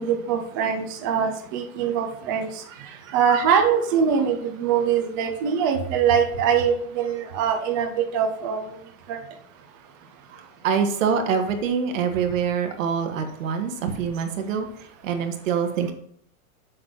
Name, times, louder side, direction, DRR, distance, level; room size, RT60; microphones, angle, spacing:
voice 1, 0.0-2.5 3.1-8.6 9.1-9.2, right 7 dB, 15° right, 4 dB, 0.4 m, -23 dB
voice 2, 2.7-3.2 10.3-14.7 15.0-15.9, right 6 dB, 65° right, 5 dB, 1.8 m, -25 dB
7.6 x 6.5 x 5.6 m, 0.66 s
supercardioid pair, 170°, 42 cm